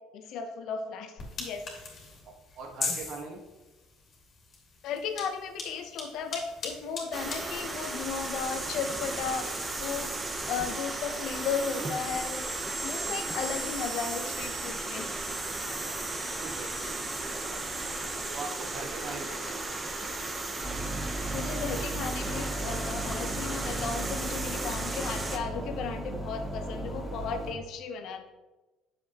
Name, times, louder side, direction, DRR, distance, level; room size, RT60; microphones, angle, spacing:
voice 1, 0.1-1.6 4.8-10.1 10.5-12.5 12.8-15.1 21.3-28.3, left 6 dB, 65° left, 7 dB, 0.8 m, -35 dB
sound 1, 1.2-10.9, left 4 dB, 40° left, 2.2 m, -42 dB
voice 2, 2.2-3.4 16.2-17.6 18.3-19.9, right 3 dB, 60° right, 2 dB, 1.4 m, -42 dB
sound 2, 7.1-25.4, right 2 dB, 20° right, 0.9 m, -35 dB
sound 3, 20.6-27.5, right 1 dB, 5° left, 2.4 m, -36 dB
8.4 x 6.8 x 3.0 m, 1.1 s
cardioid pair, 115°, 0 cm